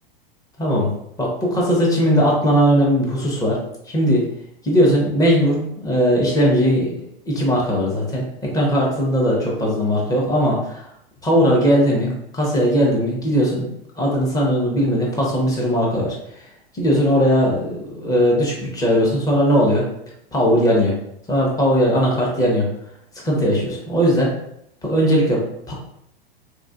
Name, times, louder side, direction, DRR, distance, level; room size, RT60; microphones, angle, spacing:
voice 1, 0.6-0.9 1.2-3.6 3.9-4.3 4.6-10.9 11.2-13.6 14.0-16.2 16.7-19.8 20.3-21.0 21.3-22.7 23.2-24.3 24.8-25.7, equal, 10° left, -3 dB, 0.9 m, -19 dB
3.5 x 2.5 x 2.4 m, 0.76 s
hypercardioid pair, 105°, 30 cm